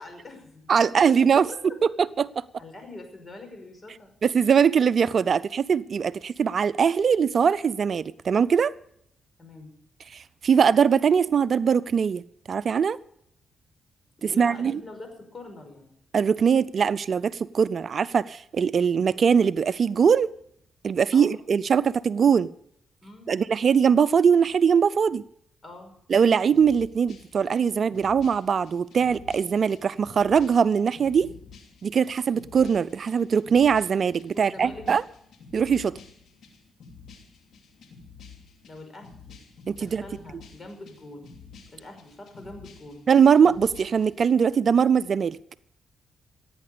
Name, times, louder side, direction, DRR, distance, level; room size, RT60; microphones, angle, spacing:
voice 1, 0.0-1.8 2.6-4.1 9.4-9.7 14.2-15.9 21.1-21.3 23.0-23.3 25.6-26.0 34.3-34.8 38.7-39.4 39.8-41.3 41.7-43.1, left 2 dB, 40° left, 5.4 m, -43 dB
voice 2, 0.7-1.5 2.0-2.4 4.2-8.7 10.1-13.0 14.2-14.8 16.1-20.3 20.8-22.5 23.3-25.2 26.1-31.3 31.8-35.0 35.5-36.0 39.7-40.0 43.1-45.4, right 6 dB, 60° right, 0.5 m, -21 dB
sound 1, 26.5-44.3, left 5 dB, 75° left, 2.9 m, -50 dB
16.0 x 9.5 x 6.7 m
supercardioid pair, 60°, 0 cm